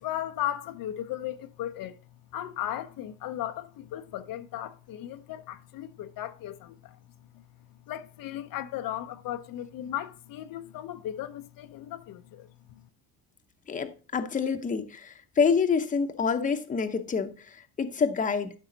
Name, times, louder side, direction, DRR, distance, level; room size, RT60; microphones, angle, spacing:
voice 1, 0.0-2.0 2.3-7.0 7.3-7.4 7.9-12.8, left 12 dB, 60° left, 0.7 m, -36 dB
voice 2, 13.7-18.5, left 5 dB, 20° left, 0.8 m, -27 dB
12.0 x 5.5 x 3.9 m
cardioid pair, 145°, 39 cm